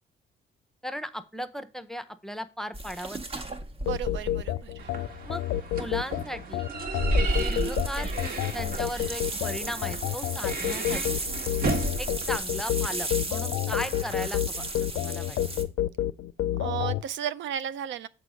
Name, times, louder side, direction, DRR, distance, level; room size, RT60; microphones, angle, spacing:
voice 1, 0.8-3.4 5.2-5.4 5.8-6.7 7.3-8.1 8.5-11.2 12.0-15.4, equal, ahead, 0.7 m, -37 dB
sound 1, 2.7-5.0 7.3-15.6, right 2 dB, 30° right, 1.1 m, -36 dB
voice 2, 3.8-4.9 16.6-18.1, right 10 dB, 70° right, 0.5 m, -34 dB
sound 2, 3.9-17.0, left 13 dB, 80° left, 0.4 m, -30 dB
sound 3, 4.8-12.4, right 2 dB, 50° right, 1.5 m, -32 dB
6.7 x 4.8 x 5.0 m
cardioid pair, 90°, 20 cm